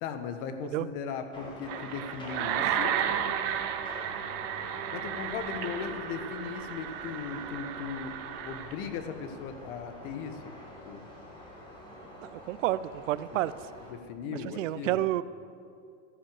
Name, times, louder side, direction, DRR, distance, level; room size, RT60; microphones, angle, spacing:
voice 1, 0.0-3.0 4.9-8.1 8.4-10.5 10.8-11.1 13.9-15.1, left 6 dB, 45° left, 8 dB, 1.3 m, -38 dB
sound 1, 1.3-13.9, left 1 dB, 10° left, 2.1 m, -47 dB
sound 2, 1.7-8.8, right 9 dB, 20° right, 0.3 m, -33 dB
voice 2, 12.2-13.5 14.3-15.2, right 15 dB, 70° right, 16 dB, 0.6 m, -30 dB
14.0 x 9.8 x 7.7 m, 2.4 s
supercardioid pair, 165°, 39 cm